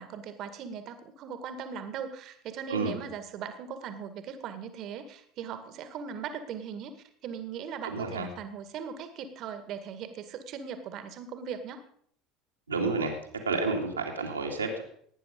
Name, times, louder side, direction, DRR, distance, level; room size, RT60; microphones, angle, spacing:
voice 1, 0.0-7.0 7.2-11.8, right 7 dB, 50° right, 10 dB, 1.9 m, -39 dB
voice 2, 7.8-8.3 12.7-13.2 13.5-14.8, right 3 dB, 85° right, 1 dB, 2.5 m, -30 dB
17.5 x 9.4 x 5.3 m, 0.63 s
figure-of-eight pair, 70°, 0 cm